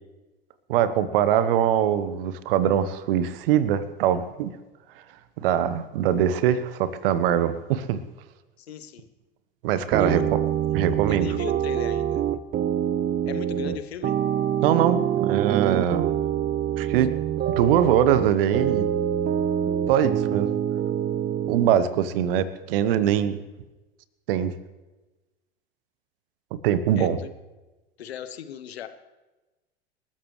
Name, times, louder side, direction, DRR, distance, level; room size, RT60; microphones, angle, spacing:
voice 1, 0.7-4.5 5.4-8.0 9.6-10.4 10.7-11.3 14.6-16.1 16.8-17.1 17.5-18.9 19.9-20.5 21.5-23.4 24.3-24.5 26.6-27.2, right 10 dB, 60° right, 14 dB, 1.2 m, -22 dB
voice 2, 8.6-9.1 10.0-10.3 11.1-12.2 13.2-14.2 27.0-27.3 28.0-28.9, left 9 dB, 75° left, 11 dB, 1.1 m, -36 dB
sound 1, 9.9-21.7, right 10 dB, 30° right, 0.8 m, -25 dB
27.0 x 13.5 x 3.3 m, 1.1 s
figure-of-eight pair, 80°, 32 cm